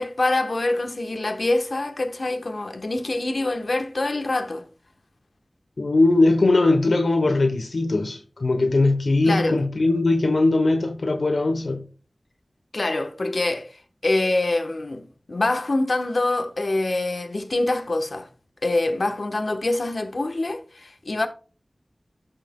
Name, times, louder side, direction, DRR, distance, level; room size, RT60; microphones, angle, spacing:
voice 1, 0.0-4.6 9.2-9.6 12.7-18.3 18.6-21.3, left 2 dB, 70° left, 1.0 m, -25 dB
voice 2, 5.8-11.8, left 2 dB, 90° left, 0.9 m, -20 dB
14.0 x 5.7 x 2.2 m
wide cardioid pair, 55°, 0 cm